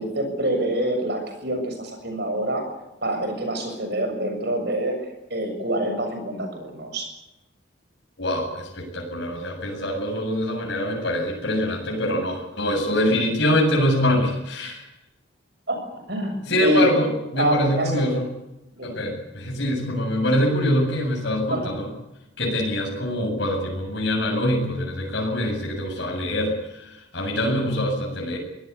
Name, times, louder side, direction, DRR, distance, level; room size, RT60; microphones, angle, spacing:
voice 1, 0.0-2.7 3.0-7.1 15.7-15.8 16.1-16.9 17.4-18.1 18.7-18.9 21.4-21.8, right 1 dB, 55° right, 5 dB, 7.0 m, -26 dB
voice 2, 8.2-14.8 16.5-18.2 18.8-21.9 22.4-28.4, left 1 dB, 60° left, -1 dB, 7.9 m, -24 dB
24.0 x 17.5 x 8.5 m, 0.91 s
head